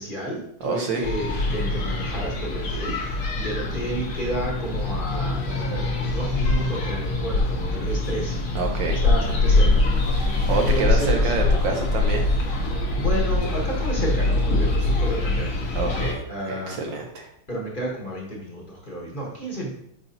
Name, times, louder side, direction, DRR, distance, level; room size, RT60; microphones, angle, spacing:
voice 1, 0.0-8.4 8.9-9.8 10.5-11.3 12.9-15.6 16.3-16.8 17.5-19.7, right 1 dB, 30° left, -3 dB, 1.1 m, -31 dB
voice 2, 0.6-1.1 8.5-9.0 10.5-12.3 15.7-16.2 16.5-17.3, right 4 dB, 65° right, 1 dB, 1.4 m, -27 dB
sound 1, 1.0-16.1, left 2 dB, 70° left, 1.9 m, -23 dB
7.1 x 5.0 x 2.8 m, 0.72 s
omnidirectional pair, 2.4 m